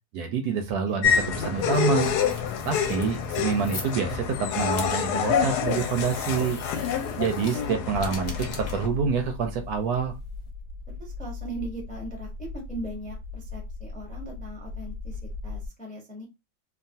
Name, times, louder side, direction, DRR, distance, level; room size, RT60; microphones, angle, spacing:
voice 1, 0.1-2.1 2.6-6.6 7.2-10.1, right 6 dB, 70° right, 5 dB, 1.0 m, -27 dB
sound 1, 1.0-8.9, left 7 dB, 75° left, 1.1 m, -27 dB
sound 2, 1.3-10.5, left 3 dB, 50° left, 1.0 m, -44 dB
sound 3, 7.9-15.7, left 3 dB, 90° right, 1.3 m, -38 dB
voice 2, 10.9-16.3, right 1 dB, 10° left, 0 dB, 0.5 m, -39 dB
3.0 x 2.3 x 2.6 m, 0.24 s
omnidirectional pair, 1.9 m